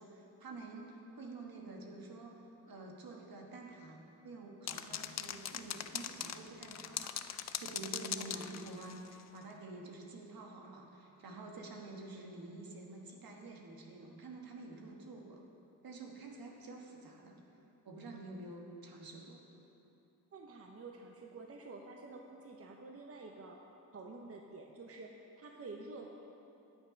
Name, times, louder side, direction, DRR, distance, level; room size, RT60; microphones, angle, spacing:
voice 1, 0.0-15.4 15.8-17.3 17.8-19.5, right 2 dB, 70° right, 0 dB, 1.3 m, -49 dB
sound 1, 4.7-9.2, left 9 dB, 45° left, 0.4 m, -41 dB
voice 2, 20.3-23.6 23.9-26.1, right 3 dB, 40° right, 2 dB, 0.8 m, -49 dB
9.5 x 6.5 x 5.2 m, 2.9 s
cardioid pair, 65°, 36 cm